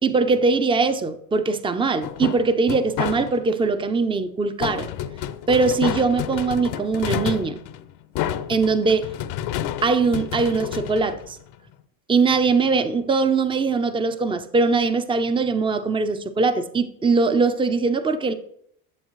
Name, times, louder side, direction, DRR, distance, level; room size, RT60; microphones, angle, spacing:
voice 1, 0.0-4.9 5.5-7.6 8.5-9.1 9.8-11.4 12.1-18.3, right 4 dB, 10° right, 0.6 m, -21 dB
sound 1, 2.0-3.6 4.6-11.7, left 11 dB, 60° left, 0.8 m, -30 dB
11.5 x 7.1 x 3.1 m
supercardioid pair, 90°, 45 cm